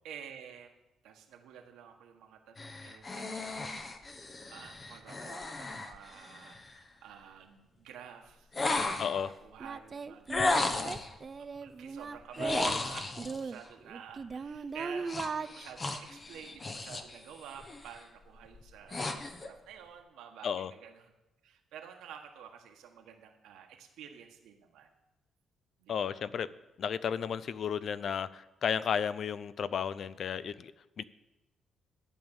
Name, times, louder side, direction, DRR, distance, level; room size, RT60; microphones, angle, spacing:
voice 1, 0.0-0.7 1.0-3.9 4.5-10.3 10.5-11.0 11.4-21.1 21.4-24.9 25.8-26.2, right 8 dB, 85° right, 3 dB, 1.6 m, -50 dB
sound 1, 2.6-6.8 8.5-9.3 10.3-11.1 12.3-13.4 15.1-17.2 17.5-17.9 18.5-19.5, left 2 dB, 30° left, 1.2 m, -35 dB
voice 2, 9.0-9.3 20.4-20.7 25.9-26.5 26.8-30.7 31.0-31.1, left 7 dB, 60° left, 16 dB, 0.5 m, -33 dB
Singing, 9.0-9.1 9.6-12.8 13.2-15.5, right 4 dB, 40° right, 0.5 m, -38 dB
12.5 x 5.3 x 9.0 m, 0.99 s
cardioid pair, 90°, 0 cm